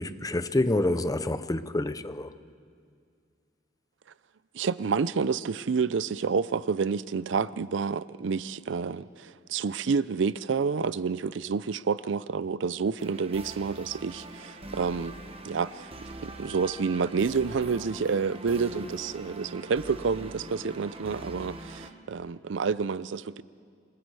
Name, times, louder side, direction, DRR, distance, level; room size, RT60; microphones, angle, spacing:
voice 1, 0.0-2.3, left 2 dB, 20° left, 0.6 m, -27 dB
voice 2, 4.5-15.1 15.4-15.9 16.2-23.4, right 5 dB, 75° right, 0.5 m, -29 dB
sound 1, 13.0-21.9, right 2 dB, 30° right, 1.3 m, -43 dB
27.0 x 21.0 x 4.8 m
head